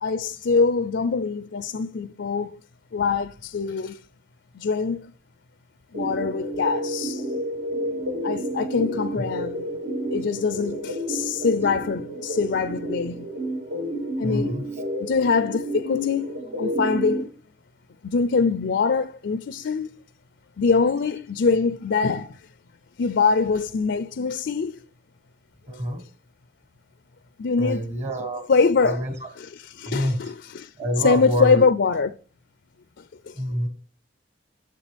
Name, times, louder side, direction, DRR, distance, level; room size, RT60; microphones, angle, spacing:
voice 1, 0.0-2.6 2.9-4.0 4.5-5.1 5.9-7.3 8.2-9.8 10.1-13.3 14.2-14.6 15.0-17.3 18.0-19.9 20.6-22.4 23.0-24.8 27.4-27.8 28.5-29.0 29.4-30.7 31.0-32.2 33.0-33.3, left 4 dB, 60° left, 0.4 m, -24 dB
sound 1, 5.9-17.2, equal, 90° right, 5.4 m, -30 dB
voice 2, 14.2-14.6 25.7-26.0 27.6-28.5 28.8-29.1 29.8-30.2 30.8-31.7 33.3-33.7, equal, 35° right, 1.4 m, -26 dB
9.8 x 7.7 x 3.4 m
head